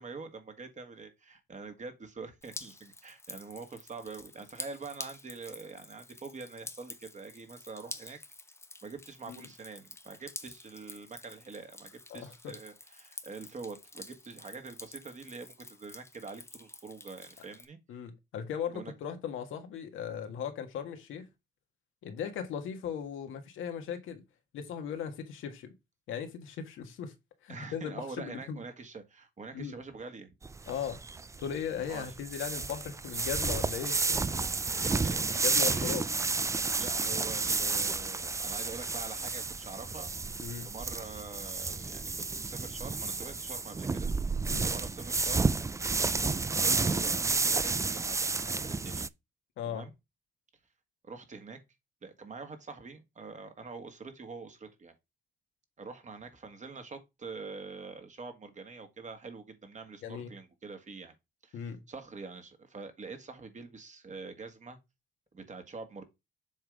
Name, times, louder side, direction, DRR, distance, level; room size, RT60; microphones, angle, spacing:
voice 1, 0.0-8.2 8.8-17.8 18.7-18.9 27.5-30.3 31.9-32.1 34.5-35.4 35.7-36.0 36.7-40.4 40.6-44.1 44.6-45.5 46.5-49.1 49.6-49.9 51.0-51.6 52.0-54.9 55.8-61.1 61.4-64.8 65.3-66.0, right 4 dB, 35° right, 1.7 m, -45 dB
Drip, 2.4-17.7, left 2 dB, 15° left, 1.0 m, -48 dB
voice 2, 12.1-12.5 17.9-21.3 22.0-24.2 24.5-25.7 26.1-27.1 27.4-28.6 29.5-29.8 30.7-31.0 31.4-34.2 35.4-36.0 40.4-40.7 44.5-44.7 49.6-49.8 60.0-60.3 61.5-61.8, left 8 dB, 85° left, 1.6 m, -38 dB
sound 1, 30.4-49.1, right 4 dB, 15° right, 0.4 m, -31 dB
7.3 x 3.7 x 4.8 m
cardioid pair, 90°, 20 cm